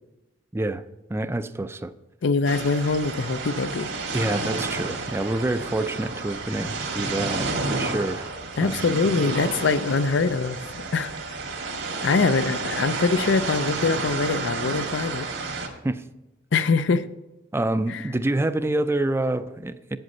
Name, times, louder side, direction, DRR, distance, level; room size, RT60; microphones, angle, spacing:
voice 1, 0.5-0.8 1.1-1.9 4.1-8.3 8.6-9.0 15.8-16.0 17.5-20.0, right 2 dB, 15° right, 0.4 m, -27 dB
voice 2, 2.2-3.9 8.6-10.6 10.9-11.1 12.0-15.3 16.5-17.1 17.9-18.0, left 4 dB, 70° left, 0.5 m, -23 dB
sound 1, 2.5-15.7, right 3 dB, 75° right, 1.8 m, -31 dB
8.7 x 7.9 x 5.4 m
head